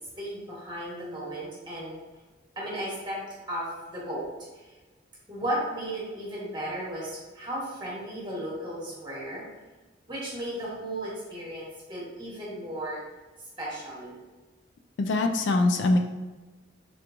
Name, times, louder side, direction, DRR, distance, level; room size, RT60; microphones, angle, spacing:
voice 1, 0.2-2.0 2.6-3.2 3.5-4.2 4.5-4.7 5.3-9.4 10.1-13.0 13.6-14.1, right 1 dB, 25° right, -7 dB, 1.1 m, -35 dB
voice 2, 15.0-16.0, left 2 dB, 70° left, 5 dB, 0.3 m, -23 dB
3.5 x 2.9 x 2.5 m, 1.2 s
head